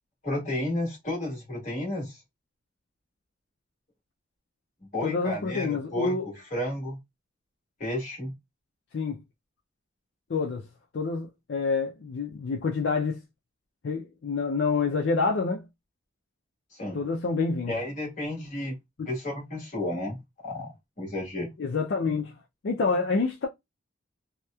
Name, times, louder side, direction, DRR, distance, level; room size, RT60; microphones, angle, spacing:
voice 1, 0.2-2.2 4.9-6.2 6.5-7.0 7.8-8.3 16.7-17.0 17.7-18.7 19.1-20.2 20.4-21.5, left 1 dB, 40° left, 1.3 m, -32 dB
voice 2, 5.0-6.3 8.9-9.2 10.3-10.6 10.9-13.2 13.8-15.7 16.9-17.8 19.0-19.1 21.6-22.3 22.6-23.5, left 4 dB, 65° left, 0.4 m, -27 dB
2.9 x 2.0 x 2.2 m
head